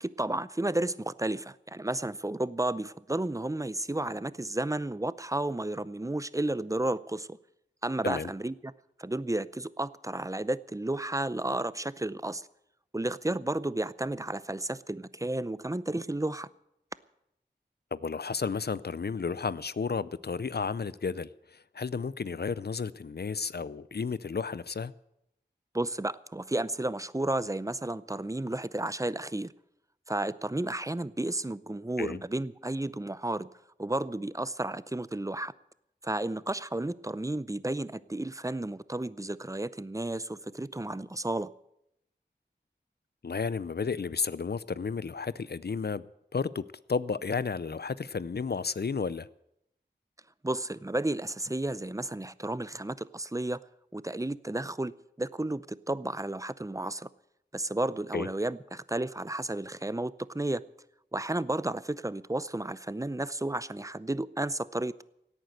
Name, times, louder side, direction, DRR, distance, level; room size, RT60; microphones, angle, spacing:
voice 1, 0.0-7.4 7.8-8.5 9.0-12.5 12.9-16.5 25.7-29.5 30.1-33.5 33.8-35.5 36.0-41.5 50.4-53.6 53.9-54.9 55.2-57.1 57.5-60.6 61.1-65.0, right 1 dB, 15° right, 0.6 m, -32 dB
voice 2, 17.9-24.9 32.0-32.2 43.2-46.0 46.3-49.3 58.1-58.3, left 5 dB, 60° left, 0.5 m, -32 dB
17.0 x 9.2 x 8.0 m
wide cardioid pair, 50°, 18 cm